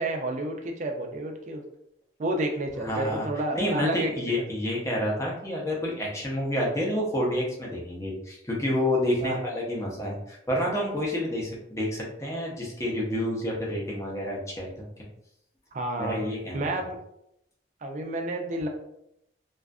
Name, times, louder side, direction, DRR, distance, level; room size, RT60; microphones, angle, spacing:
voice 1, 0.0-1.6 2.2-4.1 4.4-4.5 9.2-9.4 15.7-16.2 16.5-17.0 17.8-18.7, right 1 dB, 40° right, 3 dB, 0.4 m, -30 dB
voice 2, 2.8-3.3 3.5-15.0 16.0-16.7, left 1 dB, 15° left, -3 dB, 0.6 m, -29 dB
2.5 x 2.4 x 2.3 m, 0.79 s
head